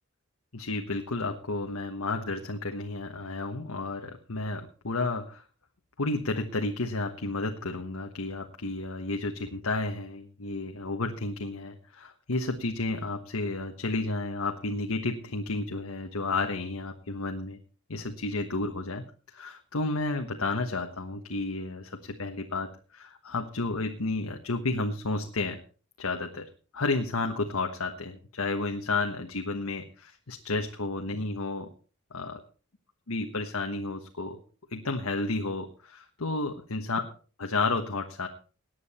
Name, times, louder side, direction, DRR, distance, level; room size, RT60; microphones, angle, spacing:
voice 1, 0.5-5.4 6.0-17.6 17.9-25.6 26.0-31.7 32.1-32.4 33.1-34.4 34.7-37.0 37.4-38.3, left 3 dB, 85° left, 4 dB, 1.3 m, -32 dB
18.5 x 9.4 x 4.3 m, 0.38 s
head